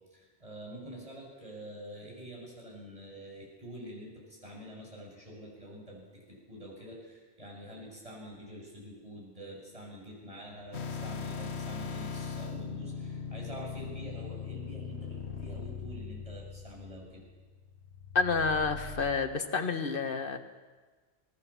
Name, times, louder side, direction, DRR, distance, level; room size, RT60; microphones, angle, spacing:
voice 1, 0.1-17.3, right 1 dB, 30° right, -2 dB, 7.3 m, -46 dB
sound 1, 10.7-19.1, left 6 dB, 80° left, 1.5 m, -40 dB
voice 2, 18.1-20.4, left 4 dB, 55° left, 7 dB, 1.7 m, -29 dB
25.5 x 19.0 x 7.3 m, 1.4 s
omnidirectional pair, 1.1 m